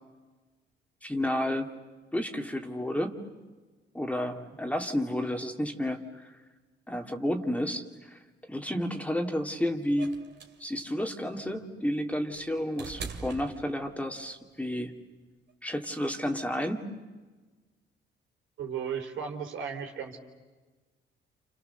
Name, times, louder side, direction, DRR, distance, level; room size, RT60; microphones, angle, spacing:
voice 1, 1.0-1.7 2.1-3.2 3.9-6.4 6.9-8.2 8.5-10.1 10.6-14.9 15.6-16.8, left 1 dB, 5° left, 4 dB, 2.3 m, -31 dB
sound 1, 10.0-14.3 15.5-15.6, right 5 dB, 60° right, 2.5 m, -43 dB
voice 2, 18.6-20.2, right 7 dB, 80° right, 3 dB, 3.9 m, -36 dB
29.0 x 28.5 x 6.8 m, 1.3 s
cardioid pair, 90°, 20 cm